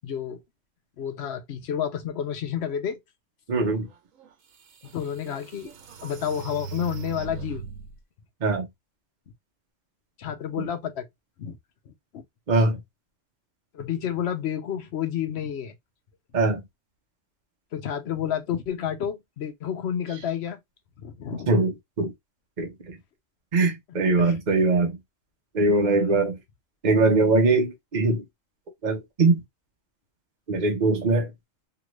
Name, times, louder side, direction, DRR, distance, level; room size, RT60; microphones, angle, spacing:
voice 1, 0.0-0.4 1.0-3.0 4.9-5.7 6.0-7.6 10.2-11.1 11.4-11.6 12.1-12.2 13.7-15.7 17.7-20.6 21.0-21.6 24.2-24.3, left 9 dB, 60° left, 0.9 m, -30 dB
voice 2, 3.5-3.9 8.4-8.7 10.6-10.7 12.5-12.8 16.3-16.6 21.5-22.1 22.6-22.9 23.5-25.0 25.5-26.4 26.8-28.2 28.8-29.4 30.5-31.3, right 3 dB, 40° right, 0.8 m, -22 dB
sound 1, 4.2-4.3 4.8-8.0, right 6 dB, 85° right, 1.1 m, -39 dB
2.9 x 2.5 x 3.1 m
omnidirectional pair, 1.4 m